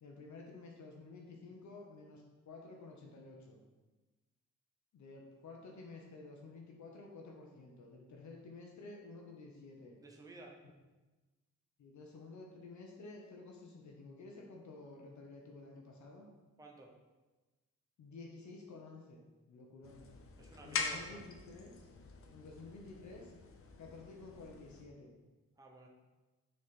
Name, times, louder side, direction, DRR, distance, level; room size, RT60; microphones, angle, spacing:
voice 1, 0.0-3.6 4.9-10.0 11.8-16.3 18.0-20.0 20.6-21.9 22.3-23.3 23.8-25.2, left 3 dB, 70° left, 0 dB, 0.9 m, -52 dB
voice 2, 10.0-10.5 16.6-16.9 20.4-21.2 25.6-25.9, right 2 dB, 10° right, 0 dB, 0.6 m, -54 dB
sound 1, 19.8-24.8, left 4 dB, 50° left, 0.6 m, -44 dB
6.6 x 4.2 x 3.7 m, 1.2 s
wide cardioid pair, 180°, 30 cm